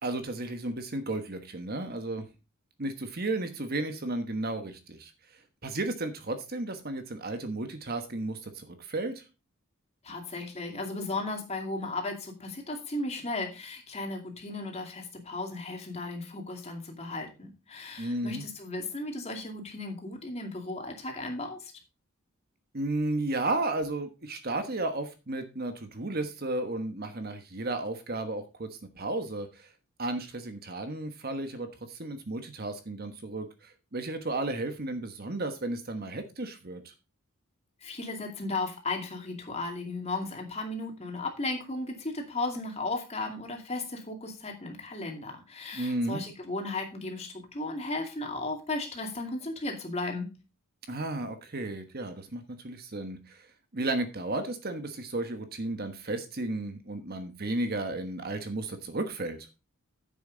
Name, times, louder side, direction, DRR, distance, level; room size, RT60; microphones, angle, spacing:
voice 1, 0.0-2.2 2.8-5.1 5.6-9.2 18.0-18.4 22.7-29.7 30.0-36.9 45.7-46.2 50.9-53.5 53.7-59.5, right 2 dB, 45° right, 8 dB, 1.3 m, -33 dB
voice 2, 10.0-21.7 37.8-50.3, left 2 dB, 30° left, 3 dB, 2.4 m, -35 dB
10.0 x 7.5 x 3.9 m, 0.29 s
head